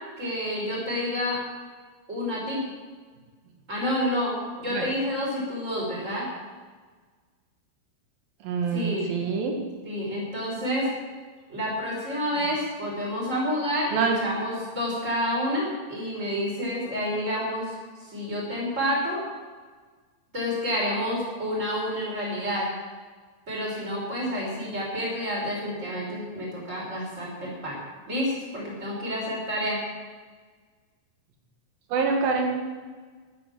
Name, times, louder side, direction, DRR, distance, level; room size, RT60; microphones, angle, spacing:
voice 1, 0.0-1.4 2.1-2.6 3.7-6.3 8.7-9.1 9.8-10.9 11.5-19.2 20.3-22.7 23.5-27.8 28.1-29.8, equal, 20° right, -4 dB, 6.1 m, -29 dB
voice 2, 8.4-9.6 13.9-14.2 31.9-32.6, right 5 dB, 85° right, 2 dB, 3.5 m, -25 dB
13.5 x 12.0 x 7.7 m, 1.5 s
omnidirectional pair, 4.0 m